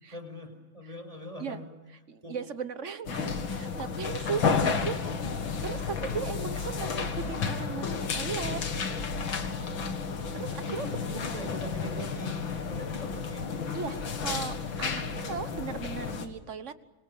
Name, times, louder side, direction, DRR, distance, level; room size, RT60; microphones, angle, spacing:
voice 1, 0.1-1.7 2.2-2.4 10.5-13.5, right 1 dB, 15° right, 5 dB, 5.1 m, -42 dB
voice 2, 2.1-5.0 5.6-8.6 10.3-10.9 13.7-16.8, right 6 dB, 45° right, 13 dB, 1.2 m, -37 dB
sound 1, 3.0-16.3, left 5 dB, 80° left, 2.7 m, -32 dB
26.0 x 26.0 x 7.1 m, 1.1 s
omnidirectional pair, 2.1 m